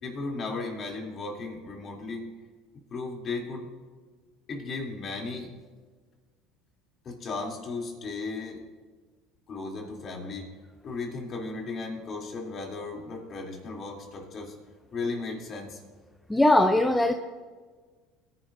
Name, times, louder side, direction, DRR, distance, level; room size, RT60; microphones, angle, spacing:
voice 1, 0.0-2.3 2.9-3.7 4.5-5.5 7.0-8.6 9.5-10.5 10.8-14.5 14.9-15.8, left 3 dB, 40° left, -1 dB, 3.1 m, -35 dB
voice 2, 16.3-17.1, left 1 dB, 10° left, 6 dB, 0.6 m, -20 dB
19.0 x 10.5 x 2.7 m, 1.5 s
supercardioid pair, 100°, 0 cm